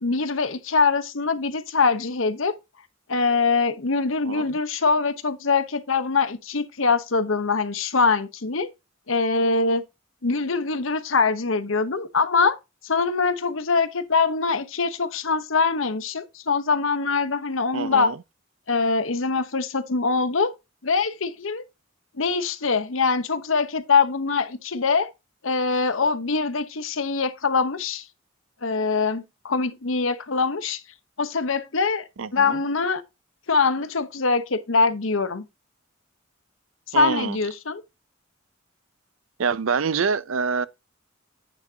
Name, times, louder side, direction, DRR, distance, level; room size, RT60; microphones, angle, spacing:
voice 1, 0.0-2.5 3.1-8.7 9.1-9.8 10.2-12.6 12.8-18.1 18.7-20.5 20.8-21.6 22.2-25.1 25.4-28.0 28.6-30.8 31.2-32.0 32.3-33.0 33.5-35.4 36.9-37.8, left 4 dB, 80° left, 1.0 m, -23 dB
voice 2, 17.7-18.2 32.2-32.6 36.9-37.4 39.4-40.7, right 5 dB, 80° right, 0.6 m, -25 dB
9.8 x 6.1 x 2.8 m
head